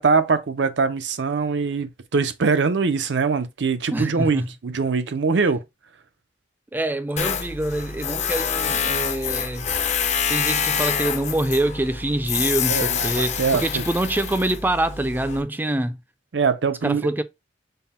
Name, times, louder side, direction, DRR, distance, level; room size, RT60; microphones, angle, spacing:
voice 1, 0.0-5.6 12.7-13.8 16.3-17.0, right 5 dB, 85° right, 0.6 m, -22 dB
voice 2, 3.9-4.5 6.7-9.7 10.3-16.0 16.8-17.2, right 1 dB, 10° right, 0.4 m, -25 dB
Tools, 7.2-15.4, left 7 dB, 40° left, 0.5 m, -26 dB
5.5 x 2.1 x 4.1 m
head